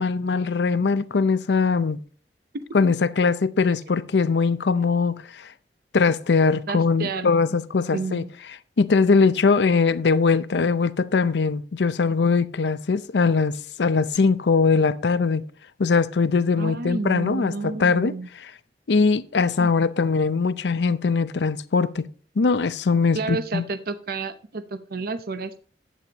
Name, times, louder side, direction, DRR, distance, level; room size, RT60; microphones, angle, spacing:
voice 1, 0.0-2.0 2.7-5.5 5.9-8.2 8.8-15.4 15.8-18.5 18.9-22.1 22.4-23.6, left 4 dB, 75° left, 0.5 m, -21 dB
voice 2, 6.7-7.3 7.9-8.3 16.6-18.3 19.6-19.7 23.1-25.6, right 4 dB, 60° right, 0.7 m, -30 dB
11.0 x 8.5 x 2.9 m
head